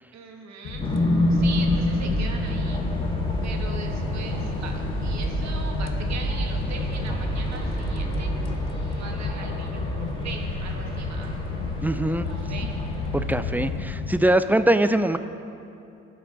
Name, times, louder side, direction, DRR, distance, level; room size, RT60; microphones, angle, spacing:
voice 1, 0.1-0.9 1.3-2.8 3.4-4.7 5.0-11.3 12.1-12.2 12.5-12.7, right 5 dB, 65° right, 2 dB, 1.4 m, -40 dB
sound 1, 0.6-14.2, left 8 dB, 60° left, 0.6 m, -34 dB
sound 2, 0.7-8.9, right 3 dB, 35° right, 1.5 m, -32 dB
sound 3, 0.8-13.8, left 1 dB, 15° left, 2.1 m, -29 dB
voice 2, 11.8-12.3 13.1-15.2, right 1 dB, 5° right, 11 dB, 0.3 m, -22 dB
16.5 x 5.9 x 3.8 m, 2.7 s
cardioid pair, 90°, 30 cm